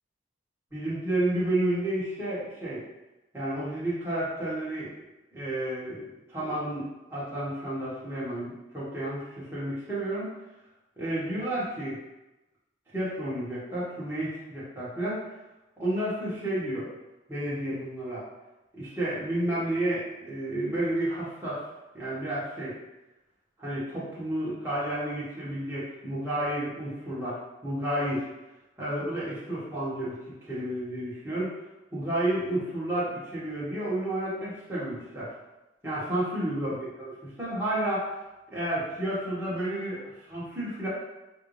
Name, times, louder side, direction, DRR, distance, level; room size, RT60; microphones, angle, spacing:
voice 1, 0.7-2.8 3.3-4.9 5.3-10.3 11.0-12.0 12.9-15.2 15.8-16.9 17.3-18.2 18.7-21.6 21.9-22.8 23.6-28.3 28.8-31.5 31.9-35.3 35.8-38.1 38.5-40.9, right 1 dB, 10° right, -10 dB, 1.3 m, -31 dB
5.7 x 2.7 x 3.3 m, 1.0 s
head